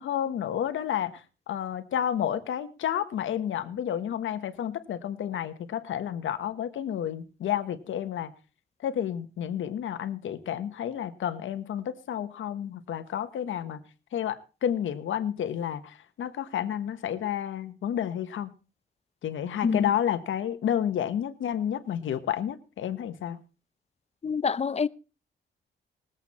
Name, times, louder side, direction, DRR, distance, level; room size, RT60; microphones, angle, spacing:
voice 1, 0.0-8.3 8.8-13.8 14.1-18.5 19.2-23.4, left 10 dB, 85° left, 1.3 m, -30 dB
voice 2, 24.2-24.9, left 5 dB, 35° left, 0.6 m, -26 dB
20.0 x 8.1 x 4.3 m
cardioid pair, 90°, 20 cm